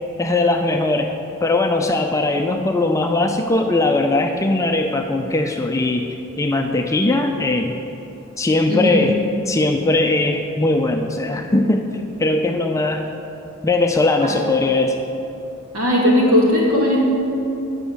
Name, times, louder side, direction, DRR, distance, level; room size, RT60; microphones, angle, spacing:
voice 1, 0.2-1.1 1.4-7.7 8.4-9.1 9.5-11.9 12.2-13.1 13.6-14.9, left 2 dB, 15° left, 3 dB, 0.4 m, -19 dB
voice 2, 8.7-9.1 14.2-14.3 15.7-17.0, left 1 dB, 85° right, -4 dB, 2.5 m, -17 dB
9.6 x 6.2 x 6.9 m, 2.9 s
head